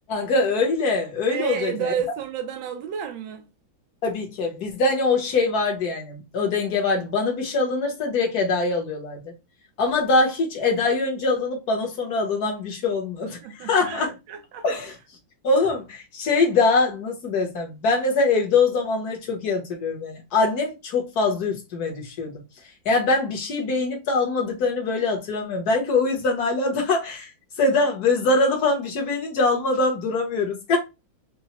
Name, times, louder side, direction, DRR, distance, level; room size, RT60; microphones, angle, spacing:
voice 1, 0.1-1.9 4.0-9.3 9.8-14.1 14.6-14.9 15.4-22.4 22.8-27.3 27.6-30.8, left 3 dB, 55° left, 1.5 m, -23 dB
voice 2, 1.3-3.5 13.4-14.6, right 8 dB, 75° right, 1.5 m, -31 dB
5.6 x 2.2 x 2.9 m
omnidirectional pair, 2.2 m